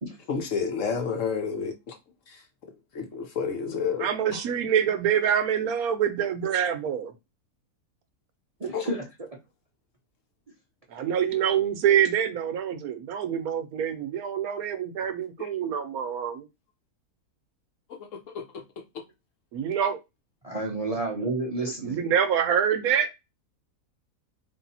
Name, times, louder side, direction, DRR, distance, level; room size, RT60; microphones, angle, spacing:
voice 1, 0.3-2.0 2.3-2.4 2.9-4.4 8.7-8.9 15.4-15.5 18.0-18.6 18.9-19.0, left 6 dB, 60° left, 1.0 m, -31 dB
voice 2, 4.0-7.1 10.9-16.5 19.5-20.0 21.6-23.1, right 9 dB, 70° right, 1.1 m, -26 dB
voice 3, 8.6-9.0 20.4-22.0, right 2 dB, 35° right, 0.6 m, -30 dB
3.6 x 2.6 x 4.1 m
omnidirectional pair, 1.6 m